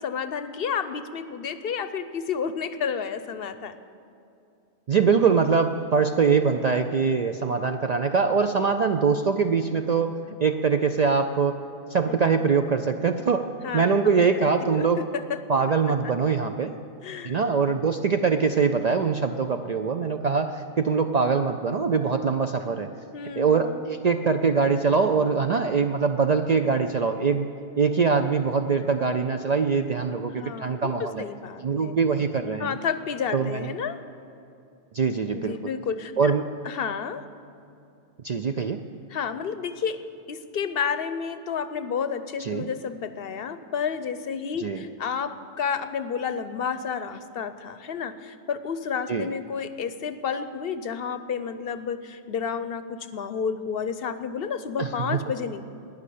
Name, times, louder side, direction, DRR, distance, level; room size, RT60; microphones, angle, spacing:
voice 1, 0.0-3.8 12.1-12.2 13.6-14.4 14.7-15.4 17.0-17.3 23.1-23.8 30.4-31.9 32.6-34.0 35.3-36.3 36.6-37.2 39.1-40.0 40.3-55.6, left 6 dB, 60° left, 11 dB, 0.8 m, -31 dB
voice 2, 4.9-11.6 11.9-15.0 15.5-16.7 17.2-22.9 23.4-27.5 27.8-31.2 31.6-32.8 33.3-33.7 34.9-35.6 36.2-36.5 38.2-38.8 42.4-42.7 44.6-44.8 49.1-49.3 54.8-55.2, right 5 dB, 55° right, 6 dB, 0.5 m, -23 dB
11.5 x 10.0 x 8.4 m, 2.6 s
omnidirectional pair, 1.2 m